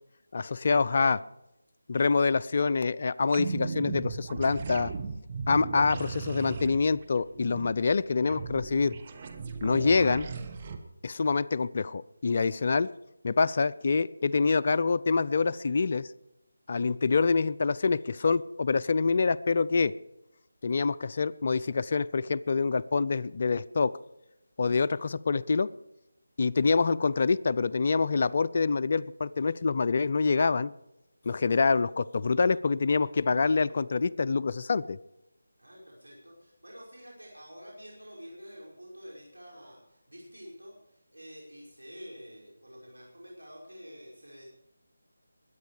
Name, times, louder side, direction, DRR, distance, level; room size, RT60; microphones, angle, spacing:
voice 1, 0.3-1.2 1.9-4.9 5.5-8.9 9.6-10.3 11.0-12.9 13.2-16.1 16.7-19.9 20.6-23.9 24.6-25.7 26.4-30.7 31.3-35.0, left 4 dB, 45° left, 13 dB, 0.4 m, -26 dB
sound 1, 3.3-10.8, right 5 dB, 30° right, 1.4 m, -36 dB
voice 2, 35.6-44.5, equal, 90° right, -4 dB, 5.3 m, -48 dB
22.0 x 9.1 x 4.9 m, 0.90 s
figure-of-eight pair, 165°, 0 cm